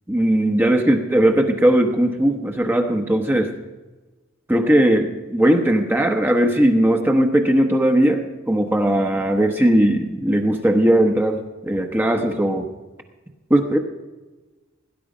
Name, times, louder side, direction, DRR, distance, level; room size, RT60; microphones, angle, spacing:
voice 1, 0.1-3.5 4.5-12.7 13.5-13.8, right 1 dB, 10° right, 4 dB, 1.0 m, -18 dB
18.0 x 10.0 x 5.0 m, 1.2 s
head